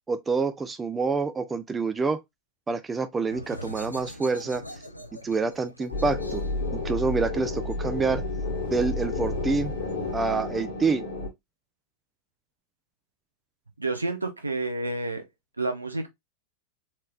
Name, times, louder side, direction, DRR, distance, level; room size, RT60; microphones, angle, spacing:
voice 1, 0.1-2.2 2.7-4.6 5.2-6.4 6.7-8.2 8.7-9.7 10.1-11.1, right 4 dB, 15° right, 0.5 m, -27 dB
sound 1, 3.2-8.6, left 1 dB, 85° left, 0.6 m, -43 dB
sound 2, 5.9-11.3, left 2 dB, 60° left, 1.6 m, -31 dB
voice 2, 13.8-15.2 15.6-16.1, right 2 dB, 80° right, 0.9 m, -29 dB
4.4 x 3.2 x 2.4 m
figure-of-eight pair, 90°, 0 cm